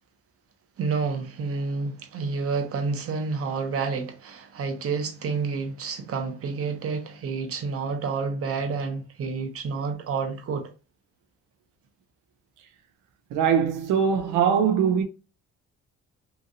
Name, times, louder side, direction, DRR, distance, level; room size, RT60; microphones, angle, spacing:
voice 1, 0.8-10.7, right 4 dB, 50° right, 0.7 m, -29 dB
voice 2, 13.3-15.0, right 7 dB, 90° right, 0.5 m, -22 dB
2.8 x 2.7 x 2.5 m
cardioid pair, 90°, 30 cm